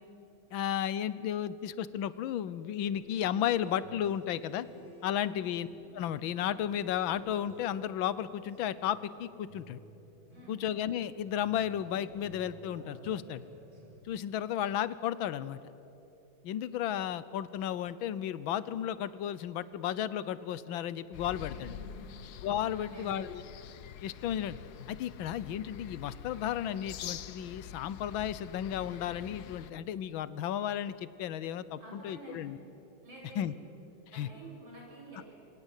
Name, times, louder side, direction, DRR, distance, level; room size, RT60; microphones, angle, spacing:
voice 1, 0.5-4.7 5.0-5.7 5.9-9.8 10.5-13.4 14.0-15.6 16.4-21.7 22.4-23.4 24.0-24.5 24.9-32.6 33.4-33.5 34.1-34.3, left 10 dB, 80° left, 16 dB, 1.6 m, -33 dB
sound 1, 2.8-14.0, right 2 dB, 25° right, 4.5 m, -53 dB
voice 2, 10.3-10.6 21.4-22.2 22.7-23.3 31.8-32.6 33.0-33.6 34.1-35.3, right 1 dB, 85° right, -3 dB, 8.9 m, -49 dB
sound 2, 21.1-29.7, left 10 dB, 60° left, 1.2 m, -46 dB
28.5 x 23.5 x 8.3 m, 2.9 s
omnidirectional pair, 2.2 m